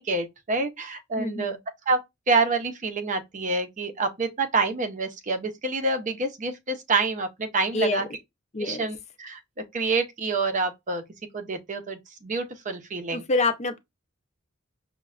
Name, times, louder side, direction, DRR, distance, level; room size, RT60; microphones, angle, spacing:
voice 1, 0.0-1.6 1.9-2.0 2.3-8.1 8.6-9.4 9.7-11.0 11.3-13.2, right 3 dB, 40° right, 0.6 m, -27 dB
voice 2, 1.2-1.6 7.7-8.1 8.5-8.9 13.1-13.8, left 3 dB, 35° left, 0.5 m, -26 dB
5.8 x 2.1 x 2.3 m
head